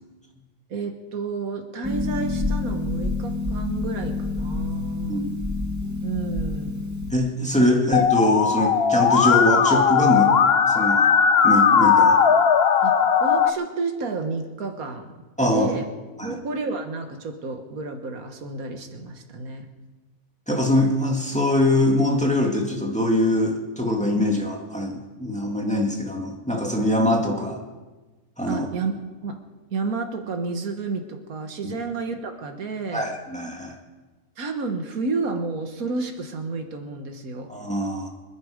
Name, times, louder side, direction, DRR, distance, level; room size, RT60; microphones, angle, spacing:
voice 1, 0.7-5.3 6.0-6.9 12.8-12.9 13.2-15.1 15.4-15.9 16.2-19.7 24.1-24.2 28.5-28.9 29.2-29.4 29.7-33.0 34.4-37.5, right 4 dB, 80° right, 5 dB, 1.9 m, -30 dB
Harp, 1.8-7.1, left 3 dB, 10° right, 2.0 m, -28 dB
voice 2, 5.1-5.4 7.1-10.3 10.7-11.0 11.4-12.2 15.4-15.7 16.2-16.4 20.5-27.6 28.4-28.7 31.6-31.7 32.9-33.8 37.5-38.1, left 1 dB, 5° left, 0 dB, 2.1 m, -23 dB
Musical instrument, 7.9-13.5, left 7 dB, 50° left, 0.9 m, -18 dB
26.5 x 10.5 x 5.1 m, 1.2 s
omnidirectional pair, 1.5 m